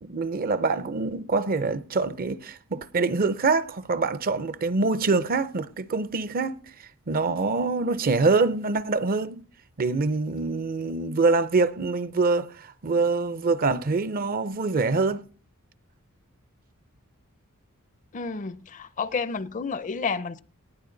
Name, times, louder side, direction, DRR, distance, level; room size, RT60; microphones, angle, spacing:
voice 1, 0.0-6.6 7.1-9.4 9.8-15.2, right 3 dB, 40° right, 0.5 m, -25 dB
voice 2, 18.1-20.4, left 5 dB, 35° left, 0.5 m, -30 dB
18.5 x 10.5 x 3.9 m
head